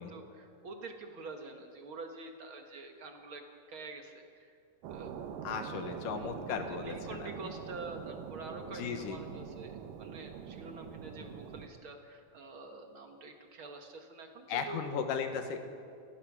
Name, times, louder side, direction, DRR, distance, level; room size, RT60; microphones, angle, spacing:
voice 1, 0.0-4.5 4.9-5.1 5.8-6.3 6.7-14.8, right 3 dB, 50° right, 4 dB, 1.6 m, -47 dB
sound 1, 4.8-11.7, right 7 dB, 80° right, 2.7 m, -44 dB
voice 2, 5.4-7.3 8.7-9.2 14.5-15.6, left 6 dB, 75° left, 6 dB, 2.9 m, -36 dB
28.5 x 15.0 x 6.1 m, 2.5 s
omnidirectional pair, 3.9 m